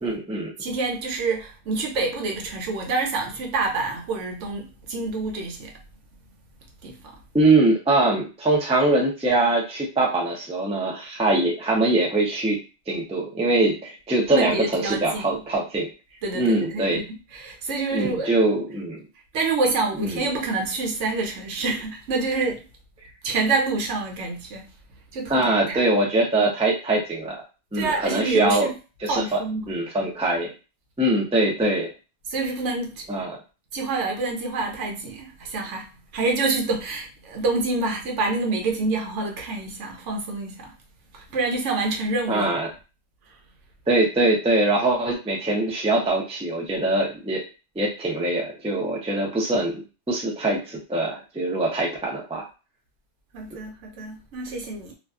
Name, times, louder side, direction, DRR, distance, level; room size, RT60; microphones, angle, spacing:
voice 1, 0.0-0.5 7.3-12.6 12.9-15.9 16.3-17.0 17.9-19.0 20.0-20.2 25.3-27.3 27.7-28.7 29.0-29.4 29.7-30.5 31.0-31.9 33.1-33.4 42.3-42.7 43.9-47.4 47.8-52.4, right 2 dB, 10° right, 0.4 m, -23 dB
voice 2, 0.6-5.8 6.8-7.1 14.3-15.4 16.2-17.0 17.3-18.3 19.3-22.7 23.2-24.7 25.1-25.8 27.7-28.7 29.1-29.6 32.3-33.1 33.7-40.7 41.1-42.5 53.3-54.9, right 3 dB, 80° right, 1.0 m, -27 dB
2.5 x 2.3 x 2.3 m
omnidirectional pair, 1.2 m